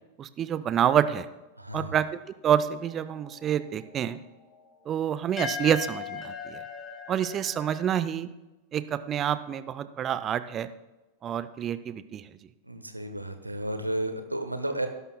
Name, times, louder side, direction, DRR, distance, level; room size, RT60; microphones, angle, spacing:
voice 1, 0.2-1.3 1.7-2.0 2.4-4.2 4.9-6.6 7.1-8.3 8.7-10.7 11.2-12.3, right 9 dB, 30° right, 13 dB, 0.5 m, -27 dB
voice 2, 1.6-2.0 12.6-14.9, right 1 dB, 85° right, 8 dB, 1.0 m, -32 dB
sound 1, 2.8-7.9, left 6 dB, 15° left, 3.2 m, -39 dB
19.0 x 11.0 x 2.2 m, 1.1 s
figure-of-eight pair, 90°, 0 cm